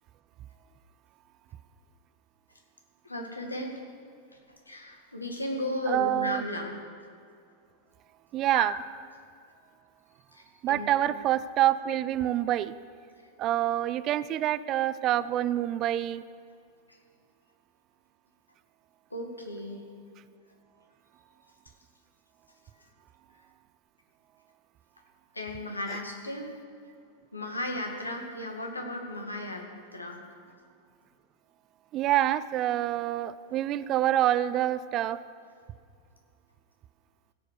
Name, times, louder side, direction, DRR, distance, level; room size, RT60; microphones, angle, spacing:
voice 1, 3.0-3.7 4.7-6.7 8.5-8.7 10.3-10.9 16.9-17.0 19.1-19.8 25.3-26.5 27.3-30.2, left 1 dB, 85° left, 1 dB, 1.9 m, -35 dB
voice 2, 5.9-6.4 8.3-8.8 10.6-12.7 13.4-16.2 31.9-35.2, right 13 dB, 35° right, 16 dB, 0.4 m, -26 dB
16.5 x 6.7 x 6.5 m, 2.3 s
figure-of-eight pair, 90°, 0 cm